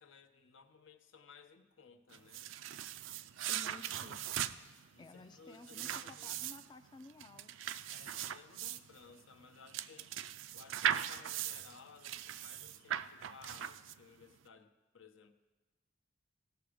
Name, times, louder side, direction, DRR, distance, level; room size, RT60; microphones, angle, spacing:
voice 1, 0.0-2.5 4.9-6.3 7.9-10.1 10.5-15.3, left 5 dB, 75° left, 8 dB, 0.8 m, -58 dB
sound 1, 2.1-14.2, right 10 dB, 70° right, 0.4 m, -40 dB
voice 2, 3.5-4.2 5.0-7.5, left 3 dB, 20° left, 7 dB, 0.3 m, -54 dB
17.0 x 6.9 x 5.0 m, 1.2 s
head